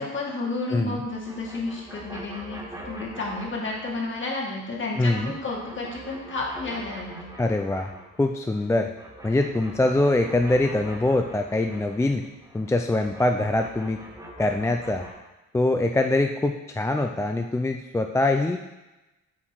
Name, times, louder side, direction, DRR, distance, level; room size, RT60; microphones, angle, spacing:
voice 1, 0.0-2.6 2.8-7.3, left 3 dB, 40° left, -2 dB, 2.0 m, -31 dB
sound 1, 0.8-4.3 4.6-8.3 8.5-15.1, right 1 dB, 10° right, 1.7 m, -44 dB
voice 2, 5.0-5.3 7.4-7.9 8.2-8.9 9.2-12.2 12.5-14.0 14.4-15.0 15.5-18.6, left 2 dB, 10° left, 4 dB, 0.4 m, -23 dB
7.3 x 4.5 x 4.6 m, 1.0 s
cardioid pair, 90°, 30 cm